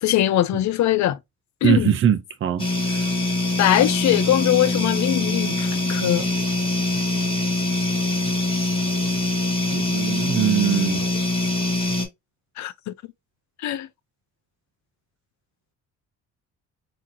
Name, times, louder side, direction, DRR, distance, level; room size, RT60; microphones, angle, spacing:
voice 1, 0.0-1.2 1.6-1.9 3.6-6.3 12.6-12.9 13.6-13.9, left 13 dB, 70° left, 0.5 m, -21 dB
voice 2, 1.6-2.6 9.7-11.0, right 9 dB, 45° right, 0.6 m, -21 dB
sound 1, 2.6-12.0, left 2 dB, 20° left, 1.6 m, -23 dB
3.7 x 2.9 x 2.7 m
cardioid pair, 90°, 30 cm